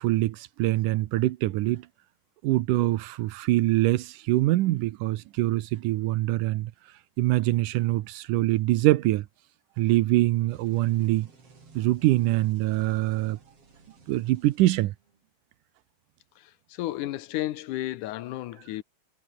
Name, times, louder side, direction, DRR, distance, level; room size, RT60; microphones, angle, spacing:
voice 1, 0.0-1.8 2.4-6.7 7.2-9.3 9.8-11.3 11.8-13.4 14.1-14.9, right 16 dB, 85° right, 2.3 m, -24 dB
sound 1, 10.3-15.2, right 4 dB, 45° right, 5.7 m, -55 dB
voice 2, 16.4-18.8, left 15 dB, 80° left, 2.4 m, -33 dB
omnidirectional pair, 3.7 m